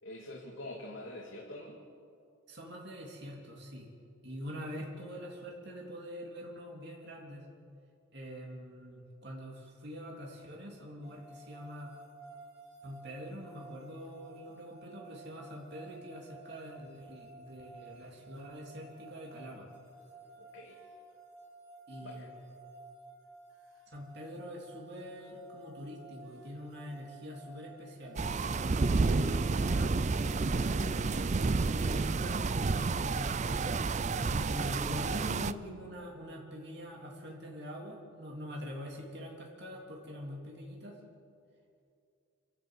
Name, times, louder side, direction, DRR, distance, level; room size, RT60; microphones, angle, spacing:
voice 1, 0.0-1.8 20.4-20.8 22.0-22.3, left 1 dB, 65° left, -2 dB, 2.4 m, -45 dB
voice 2, 2.5-3.9 4.2-7.5 8.1-12.0 12.8-19.7 21.9-22.3 23.9-28.2 28.8-31.4 31.7-33.7 34.3-41.0, equal, 55° right, -2 dB, 3.1 m, -44 dB
sound 1, 11.0-30.8, right 2 dB, 70° right, 4.1 m, -54 dB
sound 2, 28.2-35.5, right 3 dB, 35° right, 0.4 m, -30 dB
27.0 x 12.5 x 8.2 m, 2.5 s
head